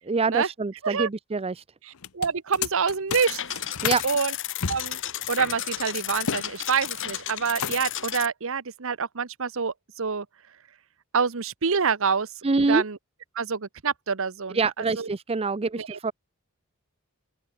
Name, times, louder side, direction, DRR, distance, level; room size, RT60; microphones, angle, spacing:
voice 1, 0.1-1.6 3.8-4.0 12.4-12.8 14.5-16.1, right 4 dB, 25° right, 0.5 m, -25 dB
sound 1, 1.9-4.1 4.6-6.5 6.7-7.1 7.4-8.0, left 7 dB, 90° left, 0.9 m, -32 dB
voice 2, 2.1-3.4 4.0-4.3 4.7-5.0 5.3-10.3 11.1-12.3 12.7-13.0 13.3-15.1 15.8-16.0, right 5 dB, 65° right, 1.0 m, -26 dB
sound 2, 3.1-8.3, left 11 dB, 60° left, 4.7 m, -33 dB
open air
head